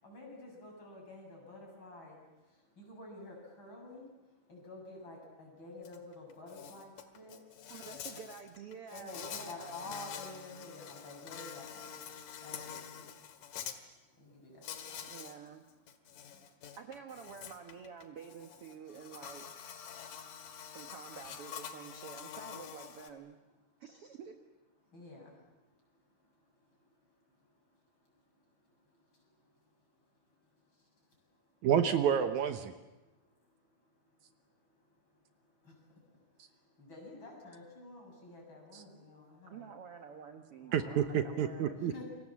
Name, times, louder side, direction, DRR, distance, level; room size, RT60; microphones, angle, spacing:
voice 1, 0.0-2.2 2.8-4.1 4.5-7.4 8.9-11.9 12.4-13.0 14.2-14.6 14.9-15.0 24.9-25.3 36.8-39.7 40.6-40.8 41.8-42.1, left 2 dB, 35° left, 0 dB, 8.1 m, -49 dB
Insect, 5.8-6.0 6.3-13.8 14.6-15.4 15.7-23.1, left 8 dB, 85° left, 3.2 m, -47 dB
voice 2, 7.7-9.9 15.1-15.6 16.7-19.7 20.7-23.4 23.8-24.4 39.5-42.0, right 6 dB, 55° right, 5 dB, 1.8 m, -49 dB
voice 3, 31.6-32.7 38.7-38.8 40.7-41.9, right 8 dB, 70° right, 8 dB, 2.4 m, -29 dB
29.0 x 24.5 x 7.4 m, 1.1 s
omnidirectional pair, 3.6 m